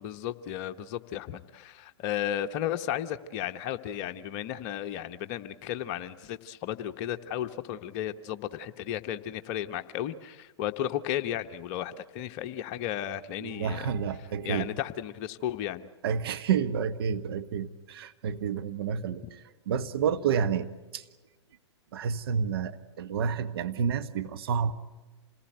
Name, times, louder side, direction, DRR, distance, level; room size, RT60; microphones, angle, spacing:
voice 1, 0.0-13.9 14.4-15.9, left 11 dB, 40° left, 9 dB, 1.1 m, -34 dB
voice 2, 13.4-14.7 16.0-21.0 21.9-24.7, right 7 dB, 60° right, 9 dB, 1.5 m, -30 dB
27.0 x 19.0 x 9.1 m, 1.3 s
figure-of-eight pair, 110°, 15 cm